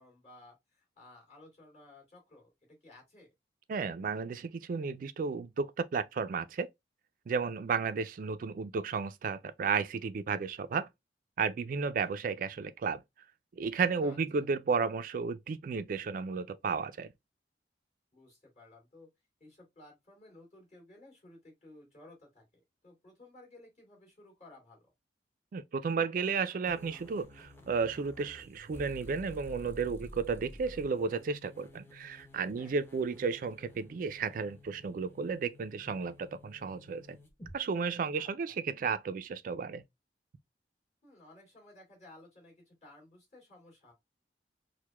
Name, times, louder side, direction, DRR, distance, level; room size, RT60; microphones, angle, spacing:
voice 1, 0.0-3.3 12.0-12.2 14.0-14.2 18.1-19.1 19.4-24.9 32.5-32.8 38.1-38.6 41.0-43.9, left 2 dB, 40° left, 2.3 m, -56 dB
voice 2, 3.7-6.7 7.3-10.9 11.4-13.0 13.6-17.1 25.5-37.2 37.5-39.8, right 5 dB, 50° right, 0.3 m, -33 dB
sound 1, 26.7-37.6, left 1 dB, 15° left, 0.6 m, -52 dB
4.6 x 2.1 x 2.2 m
head